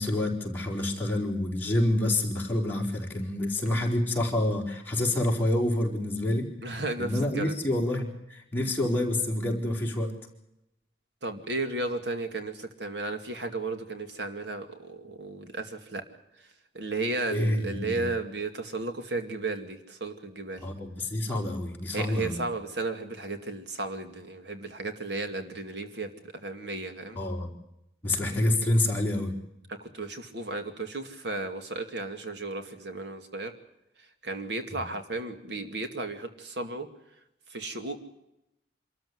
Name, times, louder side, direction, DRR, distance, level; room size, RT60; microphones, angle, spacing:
voice 1, 0.0-6.5 7.0-10.1 17.3-18.1 20.6-22.4 27.2-27.5 28.0-29.3 34.7-34.8, left 1 dB, 10° left, -2 dB, 4.6 m, -27 dB
voice 2, 6.6-7.1 7.3-7.5 11.2-16.0 16.7-20.6 21.9-27.2 29.8-33.5 34.2-36.9 37.5-38.0, right 2 dB, 70° right, 7 dB, 2.3 m, -34 dB
26.5 x 14.0 x 9.6 m, 0.85 s
head